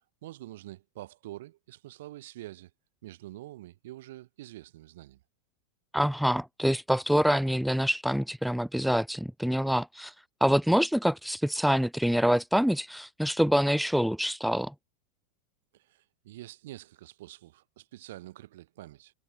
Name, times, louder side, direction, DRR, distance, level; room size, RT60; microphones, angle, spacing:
voice 1, 0.2-2.7 3.0-5.2 15.7-19.1, right 15 dB, 70° right, 6.3 m, -46 dB
voice 2, 5.9-10.1 10.4-14.7, equal, ahead, 1.0 m, -26 dB
supercardioid pair, 160°, 0 cm